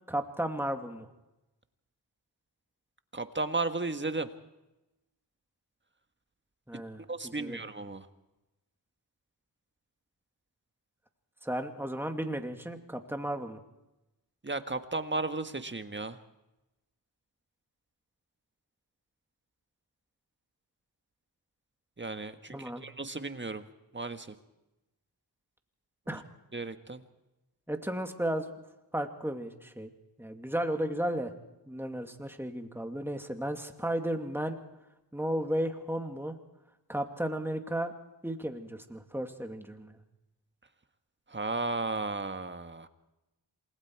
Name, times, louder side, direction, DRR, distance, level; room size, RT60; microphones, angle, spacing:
voice 1, 0.1-1.1 6.7-7.6 11.4-13.6 22.5-22.8 26.1-26.2 27.7-28.5 28.9-29.9 30.2-31.3 31.7-34.6 35.1-36.4 36.9-37.9 38.2-40.0, right 1 dB, 5° right, 5 dB, 2.5 m, -34 dB
voice 2, 3.1-4.3 7.1-8.1 14.4-16.2 22.0-23.6 23.9-24.3 26.1-26.2 26.5-27.0 41.3-42.9, right 3 dB, 25° right, 8 dB, 1.6 m, -34 dB
27.5 x 20.5 x 4.8 m, 0.97 s
cardioid pair, 55°, 43 cm